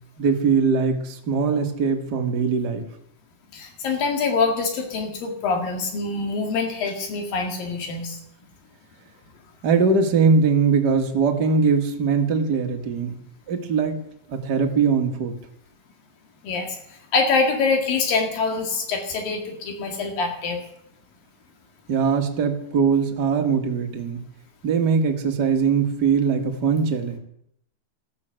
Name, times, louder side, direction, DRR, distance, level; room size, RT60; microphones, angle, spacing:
voice 1, 0.2-2.8 9.6-13.2 13.5-14.0 14.3-15.4 21.9-24.2 24.6-27.2, right 5 dB, 35° right, 3 dB, 1.9 m, -21 dB
voice 2, 3.5-8.2 16.4-16.8 17.1-20.6, left 4 dB, 75° left, 3 dB, 3.9 m, -24 dB
14.5 x 13.0 x 7.8 m, 0.72 s
omnidirectional pair, 4.0 m